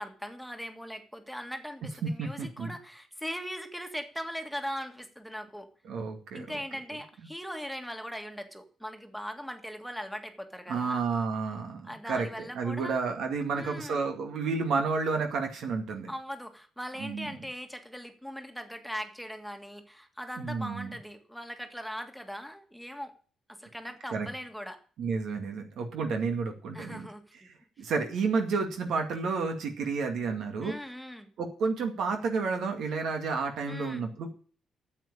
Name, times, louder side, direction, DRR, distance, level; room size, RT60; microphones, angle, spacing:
voice 1, 0.0-5.7 6.3-11.0 11.8-13.0 13.5-14.0 16.1-23.1 23.5-24.8 26.7-27.5 27.8-27.9 30.6-31.3 33.7-34.0, equal, ahead, 6 dB, 1.8 m, -40 dB
voice 2, 2.2-2.7 5.9-6.5 10.7-16.1 17.0-17.3 20.4-20.9 24.1-24.3 25.0-27.1 27.8-30.7 31.4-34.3, right 4 dB, 70° right, 4 dB, 2.1 m, -31 dB
9.1 x 7.8 x 8.8 m, 0.43 s
cardioid pair, 90°, 0 cm